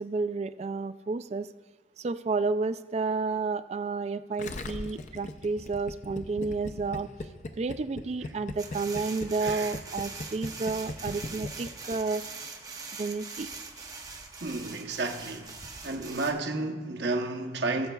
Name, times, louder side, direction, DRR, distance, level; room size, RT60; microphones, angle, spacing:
voice 1, 0.0-1.5 2.0-7.1 7.6-12.2 12.9-13.5, right 4 dB, 35° right, 0.3 m, -31 dB
Gurgling, 4.4-12.2, left 2 dB, 40° left, 0.5 m, -38 dB
sound 1, 8.6-16.3, right 4 dB, 20° right, 0.8 m, -42 dB
voice 2, 9.4-9.7 14.4-15.5 15.8-17.9, right 2 dB, 70° right, 0.9 m, -31 dB
17.0 x 7.8 x 2.3 m
head